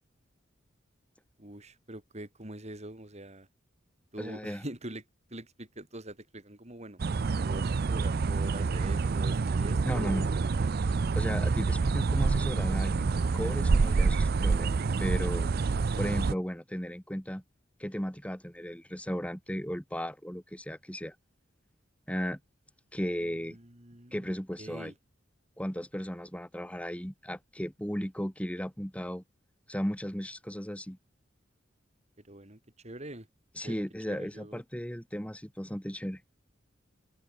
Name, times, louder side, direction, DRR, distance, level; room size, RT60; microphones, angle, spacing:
voice 1, 1.4-3.5 4.1-5.0 5.3-7.0 7.4-10.5 23.2-24.3 24.6-24.9 32.3-33.3 33.6-34.6, right 1 dB, 35° right, 5.0 m, -44 dB
voice 2, 4.2-4.6 9.9-10.3 11.1-14.7 15.0-15.5 16.0-17.4 17.8-21.2 22.1-22.4 22.9-23.6 24.1-24.9 25.6-29.2 29.7-31.0 33.6-36.2, equal, 5° left, 3.8 m, -35 dB
sound 1, 7.0-16.3, right 4 dB, 55° right, 0.5 m, -27 dB
open air
head